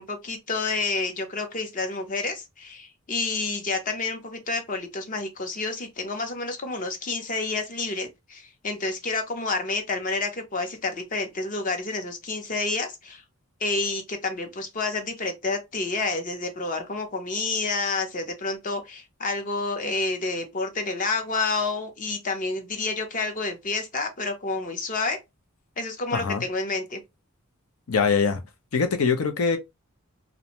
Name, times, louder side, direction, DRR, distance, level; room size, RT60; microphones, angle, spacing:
voice 1, 0.0-13.2 13.6-25.2 25.8-27.0, left 3 dB, 40° left, 0.7 m, -29 dB
voice 2, 26.1-26.4 27.9-28.4 28.7-29.6, left 5 dB, 85° left, 0.6 m, -23 dB
2.5 x 2.2 x 2.9 m
head